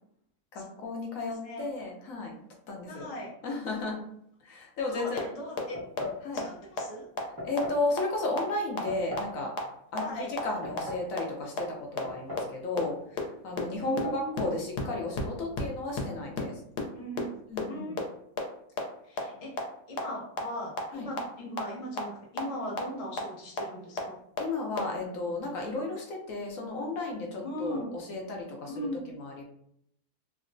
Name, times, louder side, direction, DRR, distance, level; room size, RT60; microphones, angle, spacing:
voice 1, 0.5-2.3 2.7-3.1 3.4-4.0 4.4-5.3 6.2-6.5 7.4-9.5 9.9-16.6 17.5-17.9 20.9-21.1 24.4-29.4, left 2 dB, 65° left, 0 dB, 1.0 m, -34 dB
voice 2, 2.9-3.3 4.9-5.8 6.3-7.1 10.0-10.3 13.8-14.3 16.9-17.4 17.7-18.3 19.1-19.6 19.9-24.2 27.4-27.9 28.7-29.1, equal, 45° left, -2 dB, 0.4 m, -38 dB
sound 1, 5.2-5.3 5.6-5.7 6.0-6.1 6.4-6.5 6.8-6.9 7.2-7.3 7.6-7.7 8.0-8.1 8.4-8.5 8.8-8.9 9.2-9.3 9.6-9.7 10.0-10.1 10.4-10.5 10.8-10.9 11.2-11.3 11.6-11.7 12.0-12.1 12.4-12.5 12.8-12.9 13.2-13.3 13.6-13.7 14.0-14.1 14.4-14.5 14.8-14.9 15.1-15.2 15.5-15.6 16.0-16.1 16.4-16.5 16.8-16.9 17.2-17.3 17.6-17.7 18.0-18.1 18.4-18.5 18.8-18.9 19.2-19.3 19.6-19.7 20.0-20.1 20.4-20.5 20.8-20.9 21.2-21.3 21.6-21.7 22.0-22.1 22.4-22.5 22.8-22.9 23.2-23.3 23.6-23.7 24.0-24.1 24.4-24.5 24.8-24.9, left 4 dB, 90° left, 1.2 m, -30 dB
sound 2, 5.7-6.2 7.4-7.8 8.9-9.3 10.4-11.1 12.0-12.6 12.8-12.9 13.8-14.2, left 2 dB, 20° right, 0.7 m, -38 dB
3.5 x 2.1 x 2.5 m, 0.71 s
omnidirectional pair, 1.7 m